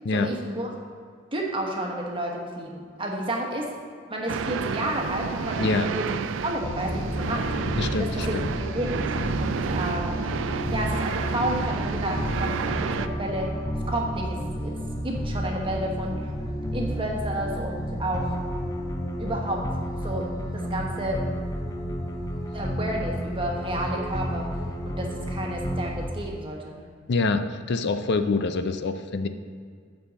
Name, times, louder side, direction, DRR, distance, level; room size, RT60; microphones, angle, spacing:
voice 1, 0.1-0.8 1.3-3.7 4.1-6.0 6.4-7.4 7.9-9.0 9.4-10.2 10.7-13.5 13.9-14.7 15.0-16.3 16.7-18.4 19.2-19.7 20.0-21.2 22.5-24.5 24.9-26.8, right 1 dB, 30° right, 0 dB, 1.3 m, -31 dB
sound 1, 4.3-13.1, right 5 dB, 75° right, 0.4 m, -30 dB
voice 2, 5.6-5.9 7.8-8.5 27.1-29.3, left 3 dB, 60° left, 9 dB, 0.4 m, -25 dB
sound 2, 6.6-26.1, equal, 20° left, 0.6 m, -31 dB
6.7 x 5.5 x 6.9 m, 2.1 s
head